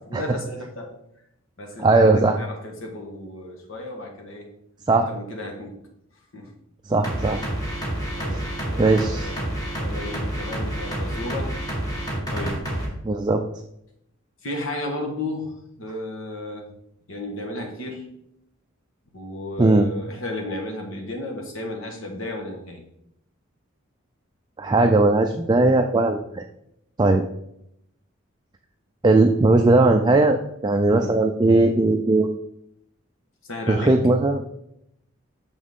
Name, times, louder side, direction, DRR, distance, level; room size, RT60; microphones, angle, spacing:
voice 1, 0.1-0.9 1.6-4.5 5.1-5.8 6.3-6.5 8.2-8.4 8.7-11.6 12.3-12.6 14.4-16.7 17.1-18.1 19.1-22.8 30.9-31.2 33.4-34.0, left 1 dB, 75° left, 2 dB, 1.4 m, -33 dB
voice 2, 1.8-2.4 4.9-5.1 6.9-7.4 8.8-9.3 13.0-13.4 19.6-19.9 24.6-26.5 27.0-27.2 29.0-30.4 30.6-32.3 33.7-34.4, right 2 dB, 20° right, 4 dB, 0.3 m, -18 dB
sound 1, 7.0-12.9, right 1 dB, 20° left, 1.7 m, -28 dB
6.2 x 6.2 x 3.6 m, 0.77 s
head